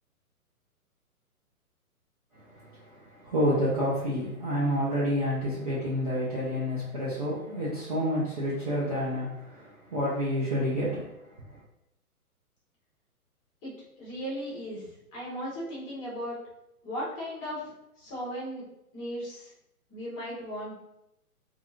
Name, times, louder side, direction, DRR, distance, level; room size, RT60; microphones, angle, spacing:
voice 1, 2.3-11.6, equal, 30° right, -9 dB, 0.4 m, -29 dB
voice 2, 14.0-16.4 16.8-17.7 18.0-18.6 18.9-19.5 19.9-20.8, equal, 20° left, -7 dB, 0.9 m, -36 dB
2.7 x 2.5 x 2.3 m, 0.85 s
figure-of-eight pair, 130°, 45 cm